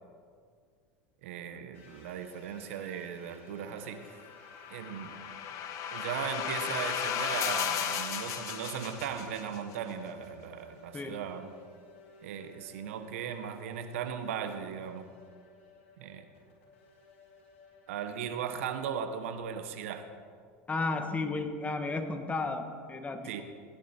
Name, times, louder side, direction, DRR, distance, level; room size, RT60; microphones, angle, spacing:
voice 1, 1.2-4.2 4.7-5.2 5.9-11.5 12.2-15.1 16.0-16.3 17.9-20.1 23.2-23.4, right 8 dB, 80° right, 8 dB, 1.0 m, -37 dB
sound 1, 1.7-18.8, left 4 dB, 90° left, 3.8 m, -57 dB
sound 2, 4.3-9.6, left 8 dB, 50° left, 1.2 m, -35 dB
voice 2, 20.7-23.4, left 3 dB, 20° left, 7 dB, 1.3 m, -33 dB
16.5 x 10.0 x 4.3 m, 2.1 s
supercardioid pair, 100°, 7 cm